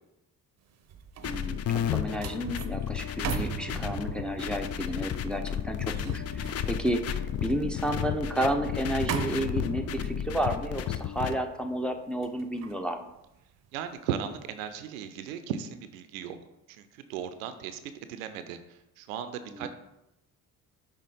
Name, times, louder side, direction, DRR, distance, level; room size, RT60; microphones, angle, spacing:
sound 1, 0.7-14.0 14.4-14.7, right 7 dB, 40° right, 0.7 m, -40 dB
sound 2, 1.2-11.3, left 9 dB, 40° left, 0.5 m, -33 dB
voice 1, 1.2-13.1 19.5-19.7, right 1 dB, ahead, 4 dB, 0.7 m, -32 dB
voice 2, 13.7-16.4 16.7-17.8 18.1-19.7, right 8 dB, 85° right, 10 dB, 0.5 m, -36 dB
5.8 x 3.4 x 4.9 m, 0.88 s
hypercardioid pair, 50°, 40 cm